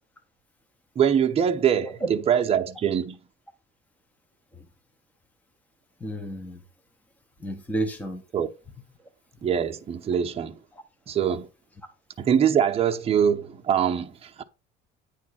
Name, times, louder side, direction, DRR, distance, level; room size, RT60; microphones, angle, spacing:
voice 1, 1.0-3.2 8.3-8.5 9.4-10.6 11.1-11.5 12.2-14.4, right 8 dB, 30° right, 0.9 m, -23 dB
voice 2, 6.0-6.6 7.4-8.2, right 1 dB, 5° left, 0.9 m, -31 dB
9.6 x 3.4 x 6.3 m
cardioid pair, 160°, 20 cm